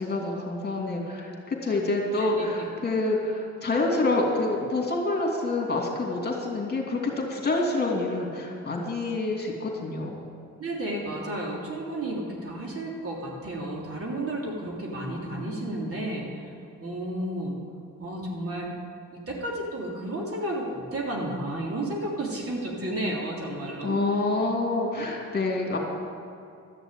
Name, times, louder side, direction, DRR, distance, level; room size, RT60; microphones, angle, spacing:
voice 1, 0.0-10.2 23.8-25.8, left 2 dB, 35° left, 0 dB, 2.8 m, -27 dB
voice 2, 2.2-2.7 10.6-16.5 16.8-17.5 18.0-18.7 19.1-24.0, right 1 dB, 50° right, -2 dB, 3.3 m, -32 dB
13.0 x 6.8 x 9.1 m, 2.5 s
cardioid pair, 90°, 30 cm